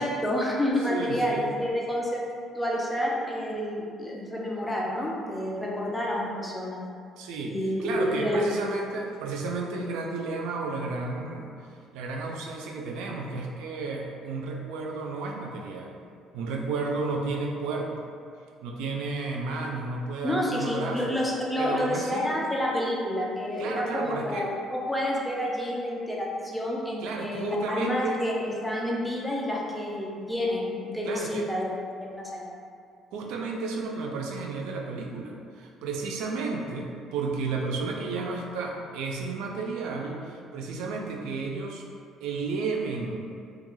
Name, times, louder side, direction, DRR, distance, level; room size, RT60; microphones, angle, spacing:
voice 1, 0.0-2.2 2.5-6.8 7.5-8.4 20.2-24.5 24.7-31.6 32.0-32.5, left 1 dB, 5° left, -3 dB, 0.4 m, -29 dB
voice 2, 0.9-1.5 7.2-7.5 7.8-11.5 11.9-15.9 16.3-18.1 18.6-21.0 21.6-22.3 23.6-24.5 27.0-28.2 31.0-31.4 33.1-41.8 42.2-43.3, right 3 dB, 90° right, 0 dB, 0.3 m, -32 dB
2.3 x 2.2 x 3.0 m, 2.3 s
cardioid pair, 130°, 0 cm